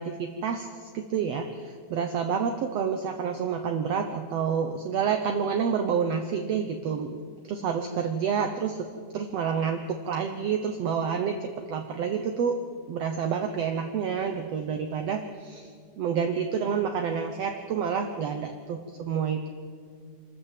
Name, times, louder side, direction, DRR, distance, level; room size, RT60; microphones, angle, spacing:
voice 1, 0.0-7.2 7.5-8.8 9.1-12.6 12.9-15.7 16.0-19.5, right 6 dB, 65° right, 6 dB, 1.7 m, -29 dB
25.5 x 13.5 x 7.6 m, 2.1 s
omnidirectional pair, 3.7 m